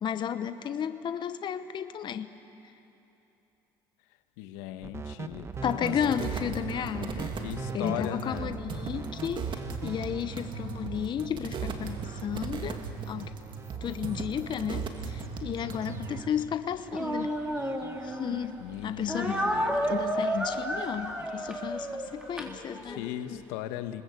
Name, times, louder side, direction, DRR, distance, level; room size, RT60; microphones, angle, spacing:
voice 1, 0.0-2.3 5.6-7.3 7.7-12.8 13.1-13.3 13.8-17.3 18.0-23.4, left 8 dB, 45° left, 11 dB, 0.9 m, -33 dB
voice 2, 4.4-6.3 7.4-8.6 18.6-19.9 22.9-24.0, left 13 dB, 80° left, 10 dB, 1.2 m, -38 dB
sound 1, 4.8-21.5, right 4 dB, 25° right, 1.3 m, -43 dB
sound 2, 5.5-16.2, right 5 dB, 45° right, 2.5 m, -37 dB
Speech, 16.9-18.4 19.1-23.1, right 1 dB, 5° right, 3.6 m, -31 dB
27.0 x 20.0 x 8.2 m, 3.0 s
supercardioid pair, 80°, 11 cm